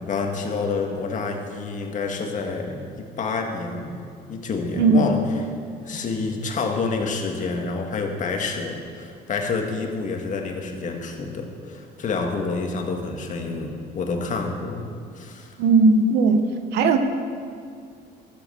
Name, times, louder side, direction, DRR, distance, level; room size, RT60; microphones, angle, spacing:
voice 1, 0.0-4.0 4.3-5.2 5.9-15.6, left 4 dB, 50° left, 2 dB, 1.8 m, -28 dB
voice 2, 15.6-16.5 16.7-17.0, right 3 dB, 80° right, 8 dB, 1.1 m, -17 dB
13.5 x 7.8 x 7.0 m, 2.2 s
cardioid pair, 110°, 17 cm